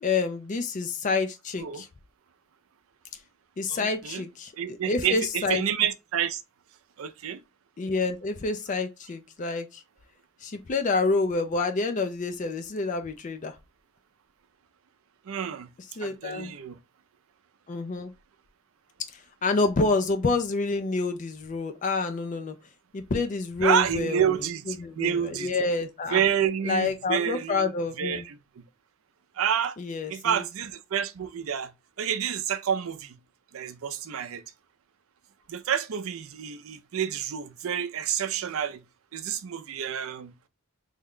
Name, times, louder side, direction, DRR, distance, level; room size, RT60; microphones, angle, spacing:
voice 1, 0.0-1.9 3.6-5.6 7.8-9.8 10.4-13.6 16.0-16.5 17.7-18.1 19.1-22.6 22.9-24.4 24.8-26.2 26.6-28.2 29.8-30.4, left 3 dB, 40° left, 0.4 m, -28 dB
voice 2, 3.7-4.2 4.6-6.4 7.0-7.4 15.3-15.7 16.0-16.8 23.6-25.5 26.1-27.7 28.0-28.6 29.4-29.8 30.1-31.7 32.0-33.2 33.5-34.4 35.5-38.8 39.1-40.3, right 8 dB, 90° right, 0.4 m, -29 dB
3.5 x 2.2 x 3.6 m
head